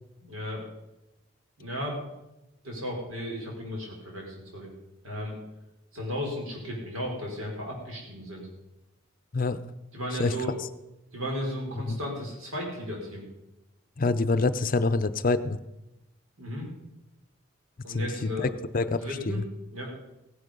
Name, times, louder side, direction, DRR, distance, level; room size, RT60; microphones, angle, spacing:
voice 1, 0.2-0.6 1.6-2.0 2.6-4.7 5.0-5.4 5.9-8.5 9.9-10.5 11.1-13.2 16.4-16.7 17.8-18.5 18.8-19.4 19.7-19.9, equal, 80° right, -1 dB, 5.2 m, -35 dB
voice 2, 14.0-15.6 17.9-18.5 18.7-19.4, left 3 dB, 40° left, 14 dB, 0.6 m, -26 dB
16.5 x 11.5 x 5.4 m, 0.94 s
head